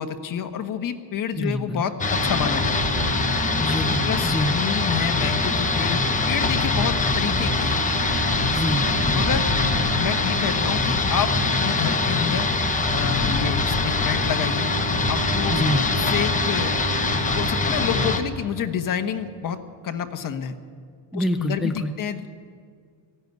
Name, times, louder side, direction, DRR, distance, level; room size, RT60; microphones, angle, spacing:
voice 1, 0.0-3.0 4.0-7.8 9.1-9.5 10.0-11.3 11.6-12.5 12.9-14.7 15.1-15.5 15.9-16.8 17.3-19.6 19.8-20.5 21.1-22.3, left 8 dB, 45° left, 7 dB, 1.3 m, -28 dB
voice 2, 1.4-1.8 3.6-4.5 8.0-9.3 15.5-15.8 21.1-21.9, left 1 dB, ahead, 5 dB, 0.7 m, -27 dB
sound 1, 2.0-18.2, left 2 dB, 15° left, 1.2 m, -23 dB
19.0 x 15.0 x 9.4 m, 2.1 s
cardioid pair, 170°, 46 cm